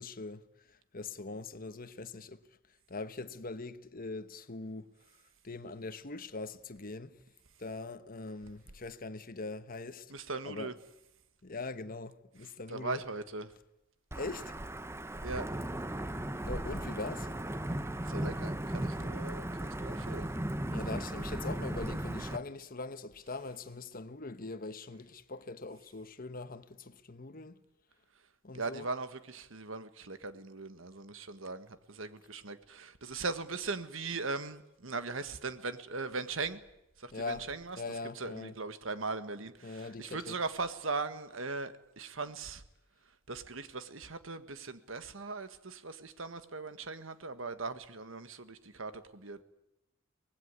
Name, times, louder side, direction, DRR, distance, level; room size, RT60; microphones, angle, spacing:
voice 1, 0.0-2.4 2.9-4.9 5.4-7.2 7.6-10.1 10.4-10.7 11.4-13.0 14.1-14.6 16.5-17.3 20.7-27.6 28.4-28.9 37.1-37.5 37.8-38.6 39.6-40.4, left 3 dB, 45° left, 1.2 m, -42 dB
voice 2, 10.1-10.7 12.7-13.5 15.2-15.5 18.1-20.3 28.5-36.6 37.0-37.8 38.1-42.6 43.3-49.4, right 3 dB, 70° right, 1.6 m, -39 dB
Wind / Thunder / Rain, 14.1-22.4, right 1 dB, 15° right, 0.9 m, -36 dB
24.5 x 19.5 x 9.6 m
head